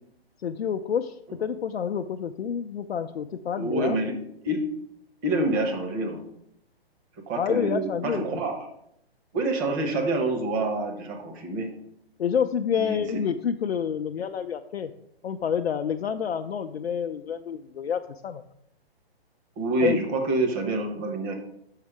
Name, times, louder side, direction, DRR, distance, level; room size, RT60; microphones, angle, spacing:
voice 1, 0.4-4.0 7.4-8.4 12.2-14.9 15.2-18.4 19.8-20.0, left 7 dB, 75° left, 6 dB, 0.5 m, -28 dB
voice 2, 3.5-4.1 4.4-4.6 5.2-6.2 7.2-8.7 9.3-11.7 12.8-13.2 19.6-21.3, right 2 dB, 25° right, 3 dB, 1.0 m, -27 dB
6.5 x 4.9 x 4.8 m, 0.74 s
figure-of-eight pair, 130°, 31 cm